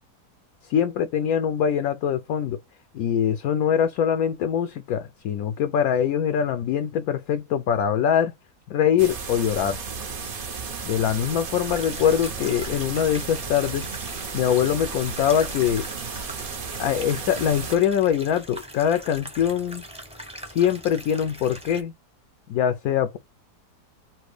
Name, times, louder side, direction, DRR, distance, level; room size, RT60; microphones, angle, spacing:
voice 1, 0.7-2.6 2.9-8.3 8.7-9.8 10.8-13.9 14.3-15.9 16.8-19.8 20.5-21.9 22.5-23.2, left 9 dB, 70° left, 0.9 m, -23 dB
sound 1, 9.0-17.8, right 5 dB, 50° right, 0.7 m, -34 dB
sound 2, 11.7-21.8, equal, 5° right, 0.7 m, -42 dB
4.4 x 2.2 x 4.7 m
omnidirectional pair, 1.8 m